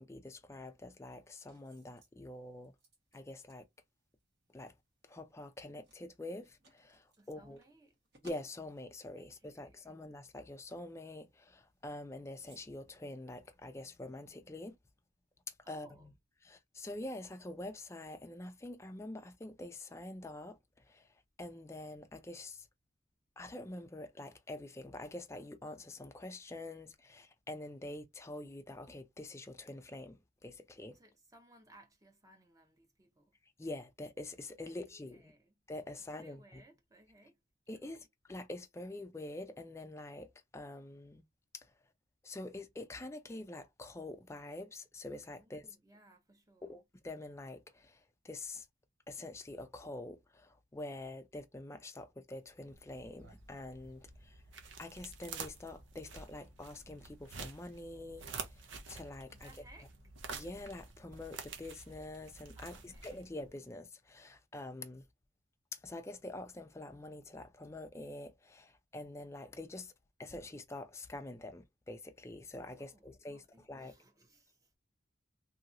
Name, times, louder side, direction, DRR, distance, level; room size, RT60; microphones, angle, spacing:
voice 1, 0.0-2.7 3.1-3.7 4.5-4.7 5.0-7.6 8.2-14.8 15.5-16.1 16.4-22.7 23.4-31.0 33.6-35.3 35.7-36.6 37.7-41.3 41.5-41.7 42.2-45.8 46.6-48.7 49.1-54.4 54.8-58.2 58.5-59.5 60.3-65.1 65.7-69.9 70.2-73.9, left 2 dB, 15° left, 0.4 m, -46 dB
sound 1, 0.5-14.3, right 1 dB, 60° right, 1.3 m, -68 dB
voice 2, 7.2-7.9 9.2-10.0 15.6-16.1 30.9-33.4 34.6-34.7 35.1-35.6 36.0-37.4 37.8-38.0 45.4-46.8 59.3-59.9 62.5-63.1 72.8-74.7, right 1 dB, 20° right, 0.8 m, -63 dB
sound 2, 52.5-63.6, right 5 dB, 80° right, 0.7 m, -49 dB
2.9 x 2.8 x 2.5 m
head